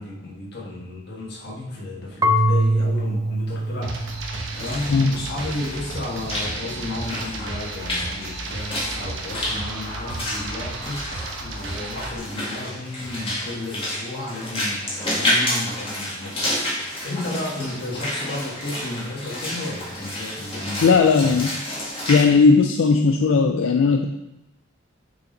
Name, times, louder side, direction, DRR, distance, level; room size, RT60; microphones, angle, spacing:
voice 1, 0.0-4.1 4.6-11.1 11.4-21.4, left 2 dB, 60° left, -3 dB, 1.5 m, -33 dB
Marimba xylophone / Wood, 2.2-5.1, right 1 dB, 20° right, 0.3 m, -23 dB
sound 1, 3.8-12.2, right 2 dB, 75° right, 0.9 m, -33 dB
Walk footsteps / Splash splatter, 4.4-22.2, left 1 dB, 30° left, 2.0 m, -30 dB
voice 2, 20.8-21.5 22.1-24.1, left 4 dB, 85° left, 4 dB, 0.4 m, -17 dB
6.8 x 4.2 x 3.9 m, 0.93 s
head